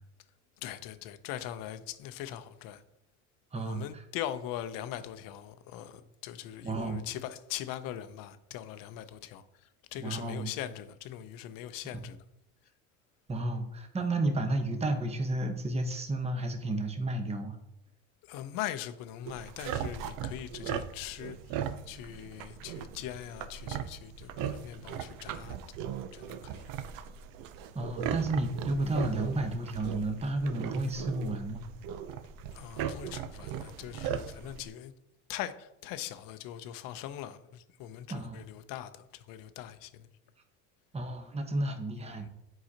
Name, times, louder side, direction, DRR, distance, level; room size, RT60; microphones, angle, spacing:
voice 1, 0.6-2.8 3.5-12.2 18.2-25.6 26.1-26.7 32.5-34.9 35.3-40.1 42.0-42.3, left 12 dB, 65° left, 0.7 m, -41 dB
voice 2, 3.5-3.9 6.6-7.0 10.0-10.5 13.3-17.6 27.7-31.6 38.1-38.4 40.9-42.3, right 2 dB, 15° right, 0.9 m, -32 dB
sound 1, 19.2-34.7, right 8 dB, 60° right, 0.6 m, -38 dB
7.8 x 4.8 x 2.8 m
supercardioid pair, 90°, 37 cm